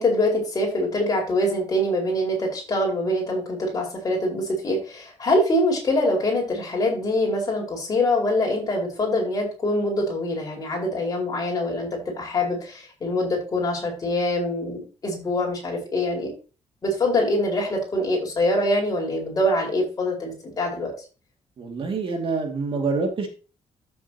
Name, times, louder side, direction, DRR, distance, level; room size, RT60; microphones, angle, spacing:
voice 1, 0.0-16.3 16.8-20.9, left 1 dB, 30° left, -1 dB, 4.9 m, -24 dB
voice 2, 21.6-23.3, right 4 dB, 45° right, 3 dB, 2.3 m, -26 dB
14.0 x 7.1 x 2.9 m, 0.34 s
cardioid pair, 160°, 12 cm